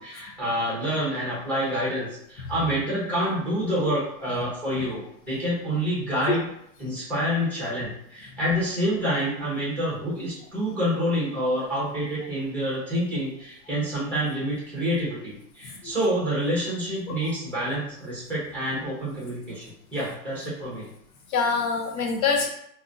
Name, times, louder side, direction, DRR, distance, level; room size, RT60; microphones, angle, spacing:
voice 1, 0.0-6.4 6.8-20.9, equal, 5° left, -8 dB, 1.0 m, -27 dB
voice 2, 21.3-22.5, left 5 dB, 60° left, 1 dB, 1.0 m, -25 dB
3.2 x 2.6 x 2.6 m, 0.72 s
supercardioid pair, 160°, 48 cm